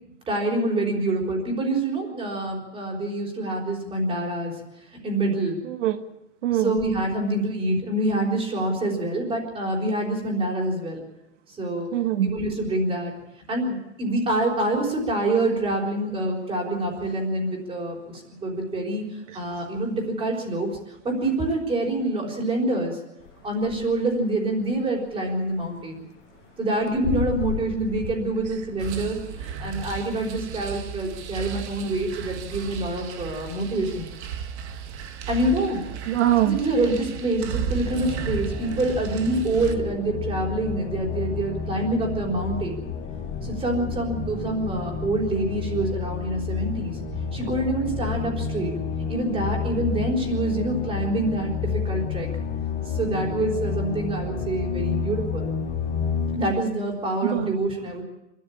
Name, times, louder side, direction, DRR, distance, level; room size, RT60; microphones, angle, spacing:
voice 1, 0.3-4.6 4.9-5.6 6.5-11.0 11.5-11.9 12.2-13.1 13.5-23.0 23.4-26.0 26.6-34.1 35.3-35.8 36.4-42.8 43.4-47.0 47.3-48.7 49.1-52.3 52.9-55.5 56.3-58.0, right 2 dB, 15° right, 0 dB, 4.2 m, -26 dB
voice 2, 5.6-6.0 6.4-6.7 11.9-12.3 36.1-36.6 57.2-57.6, right 12 dB, 85° right, 9 dB, 1.4 m, -23 dB
sound 1, 23.2-24.2 24.5-29.7, left 9 dB, 55° left, 2.3 m, -34 dB
sound 2, 28.8-39.7, right 7 dB, 65° right, 1.9 m, -34 dB
sound 3, 37.8-56.4, left 6 dB, 25° left, 2.9 m, -30 dB
25.5 x 13.0 x 8.6 m, 0.92 s
supercardioid pair, 165°, 36 cm